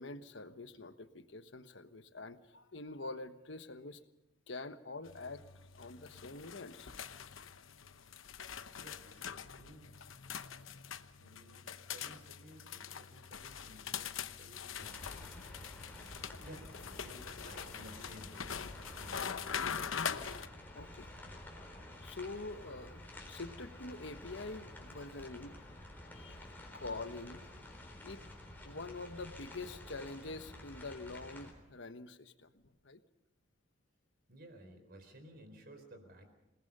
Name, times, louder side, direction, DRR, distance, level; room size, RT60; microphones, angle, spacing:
voice 1, 0.0-4.0 4.5-5.4 5.7-6.9 20.7-21.1 22.0-25.6 26.1-26.5 26.7-27.4 28.0-28.2 28.6-33.0, left 3 dB, 65° left, 10 dB, 1.2 m, -46 dB
sound 1, 5.0-20.5, left 7 dB, 85° left, 0.9 m, -43 dB
voice 2, 8.8-10.2 11.2-15.3 16.4-18.3 18.7-19.4 34.3-36.3, right 1 dB, 50° right, 7 dB, 4.2 m, -56 dB
sound 2, 14.8-31.5, left 1 dB, 10° left, 3.9 m, -51 dB
27.5 x 19.5 x 5.5 m, 0.92 s
head